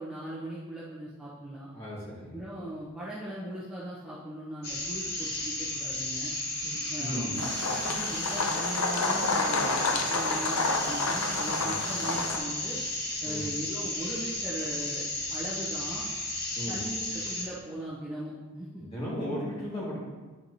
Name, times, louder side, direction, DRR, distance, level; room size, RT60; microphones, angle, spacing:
voice 1, 0.0-1.7 2.3-6.3 6.9-7.4 7.7-12.8 13.2-15.0 15.3-16.0 16.7-18.9, right 1 dB, 5° right, -10 dB, 0.8 m, -39 dB
voice 2, 1.7-2.3 6.6-7.4 11.6-11.7 13.2-13.5 16.5-16.8 18.8-20.0, equal, 25° left, -7 dB, 1.8 m, -36 dB
sound 1, 4.6-17.4, left 1 dB, 45° left, 1.4 m, -34 dB
sound 2, 7.4-12.4, left 3 dB, 70° left, 0.6 m, -29 dB
9.3 x 4.5 x 2.7 m, 1.3 s
head